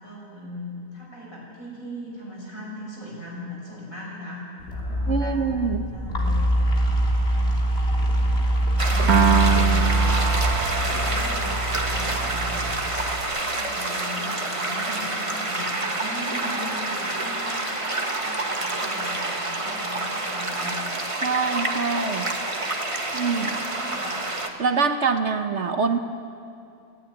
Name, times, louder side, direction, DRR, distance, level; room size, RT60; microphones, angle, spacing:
voice 1, 0.0-4.5 4.9-5.4 5.9-6.6 7.1-7.8 8.6-10.1 10.8-12.6 13.2-17.7 18.1-20.7 23.4-24.1, left 1 dB, 65° left, -4 dB, 7.3 m, -39 dB
sound 1, 4.6-13.2, right 1 dB, 45° left, 3.5 m, -24 dB
voice 2, 5.1-5.9 21.2-22.3 23.1-23.6 24.6-26.0, right 5 dB, 55° right, 7 dB, 1.2 m, -24 dB
sound 2, 8.8-24.5, right 2 dB, 20° right, 1.6 m, -28 dB
Piano, 9.1-15.5, right 8 dB, 80° right, 1.3 m, -27 dB
30.0 x 12.5 x 9.7 m, 2.5 s
omnidirectional pair, 1.5 m